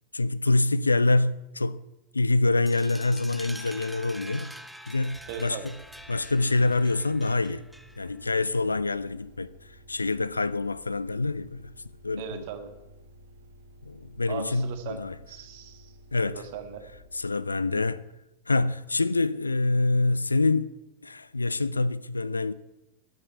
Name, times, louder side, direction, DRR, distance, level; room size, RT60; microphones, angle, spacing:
voice 1, 0.1-1.8 2.1-4.5 4.9-5.6 6.1-7.6 8.0-9.5 9.9-11.7 12.0-12.4 13.8-15.1 16.1-16.4 17.1-18.0 18.5-20.7 21.0-22.5, left 2 dB, 80° left, 0.5 m, -26 dB
sound 1, 2.7-8.2, equal, ahead, 0.8 m, -45 dB
sound 2, 5.1-18.6, right 1 dB, 65° right, 1.6 m, -53 dB
voice 2, 5.3-5.7 12.2-12.7 14.3-15.0 15.3-15.9 16.2-16.8, right 8 dB, 50° right, 1.6 m, -38 dB
13.0 x 6.6 x 9.3 m
figure-of-eight pair, 90°, 0 cm